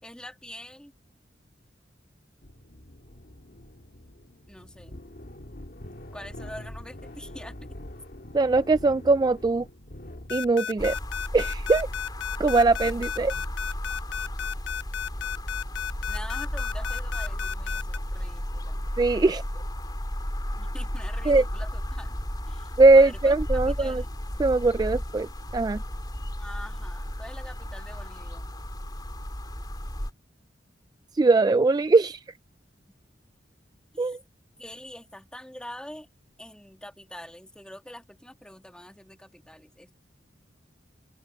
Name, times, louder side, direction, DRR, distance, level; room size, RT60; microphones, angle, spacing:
voice 1, 0.0-0.9 4.5-5.0 6.1-7.8 16.1-18.8 20.6-22.2 22.5-24.1 26.4-28.5 33.9-34.2 34.6-36.1 36.4-39.9, left 1 dB, 5° left, 2.2 m, -44 dB
sound 1, 2.4-10.8, left 1 dB, 55° left, 1.9 m, -44 dB
voice 2, 8.3-9.7 10.3-10.9 11.3-11.9 12.4-13.3 19.0-19.4 21.3-21.4 22.8-24.0 24.4-25.8 31.1-32.2 34.0-34.2, right 3 dB, 20° right, 0.3 m, -21 dB
sound 2, 10.3-18.0, left 8 dB, 80° left, 0.4 m, -33 dB
sound 3, 10.8-30.1, equal, 25° left, 3.8 m, -33 dB
open air
head